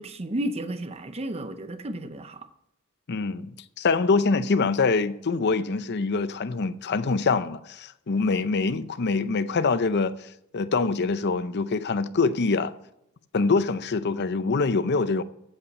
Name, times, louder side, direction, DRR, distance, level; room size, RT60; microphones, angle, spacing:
voice 1, 0.0-2.5, right 1 dB, 30° right, 0.7 m, -32 dB
voice 2, 3.1-12.7 13.3-15.2, left 4 dB, 50° left, 0.6 m, -25 dB
15.0 x 5.7 x 5.4 m
head